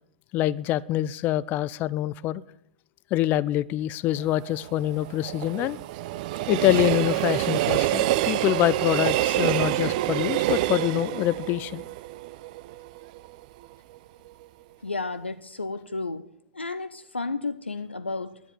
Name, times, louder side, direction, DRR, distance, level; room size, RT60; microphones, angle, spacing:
voice 1, 0.3-2.4 3.1-5.8 6.5-11.8, left 14 dB, 30° left, 19 dB, 0.4 m, -25 dB
Train, 4.2-13.3 13.6-13.7, right 16 dB, 45° right, 0.5 m, -27 dB
voice 2, 14.8-16.3 16.5-18.4, left 3 dB, 85° left, 13 dB, 0.6 m, -32 dB
11.0 x 9.9 x 8.0 m, 0.73 s
figure-of-eight pair, 100°, 6 cm